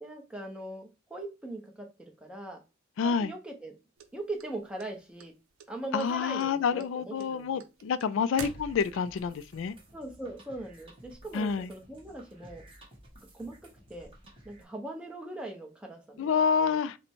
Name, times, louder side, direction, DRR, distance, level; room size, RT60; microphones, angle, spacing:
voice 1, 0.0-2.6 3.0-3.7 4.1-5.3 5.7-7.6 8.4-8.5 9.9-12.6 13.3-13.6 13.9-14.1 14.4-16.8, right 2 dB, 5° right, 0.8 m, -40 dB
voice 2, 3.0-3.3 5.9-9.7 11.3-11.7 16.2-17.0, left 6 dB, 65° left, 0.3 m, -28 dB
sound 1, 4.0-5.3 5.6-6.1 6.4-9.2, right 6 dB, 90° right, 0.6 m, -44 dB
sound 2, 8.3-14.6, right 1 dB, 25° right, 1.4 m, -54 dB
5.0 x 2.2 x 4.4 m
head